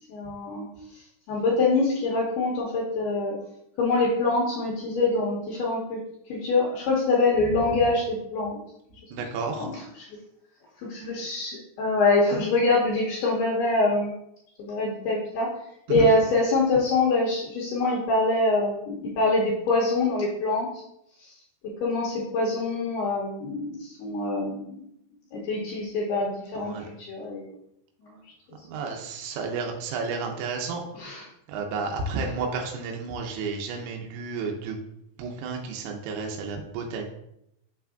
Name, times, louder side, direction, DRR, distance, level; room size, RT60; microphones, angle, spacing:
voice 1, 0.1-0.7 1.3-3.3 3.8-6.0 6.3-8.6 9.6-10.1 10.8-14.1 14.6-15.5 15.9-20.7 21.2-21.3 21.8-24.8 25.3-27.5 30.9-31.2, left 2 dB, 85° left, -3 dB, 2.3 m, -25 dB
voice 2, 9.1-9.7 15.9-16.1 26.6-26.9 28.7-30.8 31.5-34.8 35.2-37.0, right 4 dB, 90° right, 2 dB, 3.4 m, -31 dB
7.2 x 5.7 x 2.5 m, 0.78 s
omnidirectional pair, 5.9 m